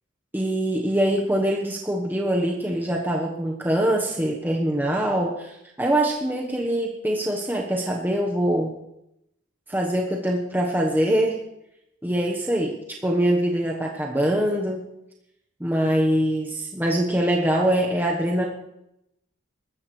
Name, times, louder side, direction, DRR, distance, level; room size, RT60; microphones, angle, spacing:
voice 1, 0.3-8.7 9.7-11.4 12.0-14.9 15.6-18.4, right 1 dB, 10° right, -1 dB, 1.1 m, -23 dB
24.5 x 13.5 x 3.2 m, 0.84 s
head